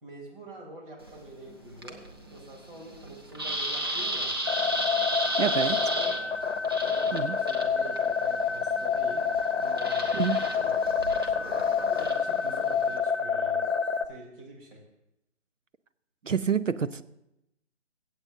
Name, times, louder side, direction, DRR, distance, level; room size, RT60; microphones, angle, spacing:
voice 1, 0.0-2.0 2.3-4.3 5.4-6.3 6.8-9.2 9.6-10.8 11.2-13.8 14.1-14.8, right 1 dB, 45° right, -1 dB, 3.3 m, -45 dB
sound 1, 1.0-13.0, right 1 dB, 20° right, 0.5 m, -35 dB
sound 2, 4.4-14.1, left 6 dB, 65° left, 0.8 m, -27 dB
voice 2, 5.4-5.8 7.1-7.4 10.1-10.4 16.2-17.0, right 6 dB, 90° right, 13 dB, 0.6 m, -27 dB
24.0 x 8.0 x 2.6 m, 0.87 s
figure-of-eight pair, 140°, 37 cm